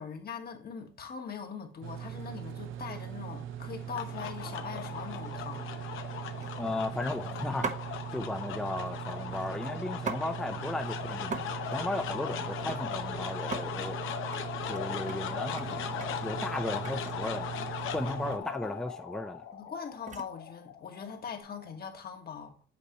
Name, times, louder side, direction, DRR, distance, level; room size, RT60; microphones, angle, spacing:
voice 1, 0.0-5.7 16.7-16.8 17.2-17.5 18.1-18.8 19.5-22.6, left 6 dB, 50° left, 1.5 m, -42 dB
sound 1, 1.8-18.4, right 10 dB, 80° right, 0.6 m, -41 dB
sound 2, 3.4-3.7 4.2-4.5 4.8-4.9 5.2-5.6 6.4-6.9 7.6-7.9 9.3-10.3 10.6-10.7 11.0-11.4 11.7-13.1 13.4-13.6 14.0-14.4 14.7-17.5 18.4-18.6 18.9-20.4 21.1-21.4, right 5 dB, 40° right, 1.0 m, -41 dB
sound 3, 3.6-21.9, left 9 dB, 85° left, 0.9 m, -39 dB
voice 2, 6.6-7.8 8.1-14.0 14.7-17.5 17.9-19.4, left 2 dB, 5° left, 0.5 m, -35 dB
8.3 x 4.1 x 3.0 m
cardioid pair, 110°, 20 cm